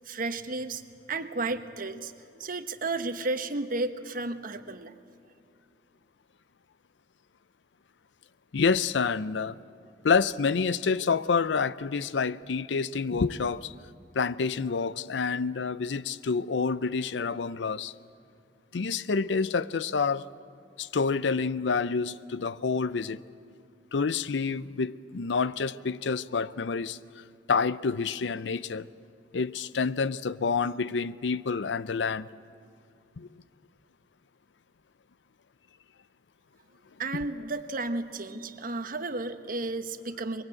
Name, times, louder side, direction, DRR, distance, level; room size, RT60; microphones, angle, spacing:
voice 1, 0.0-0.8 1.1-2.1 2.4-4.9 37.0-40.4, right 2 dB, 50° right, 1.1 m, -33 dB
voice 2, 8.5-9.6 10.0-13.7 14.1-17.9 18.7-20.2 20.8-23.2 23.9-28.9 29.3-32.3 33.2-33.3, left 5 dB, 80° left, 0.5 m, -28 dB
23.5 x 22.0 x 8.6 m
head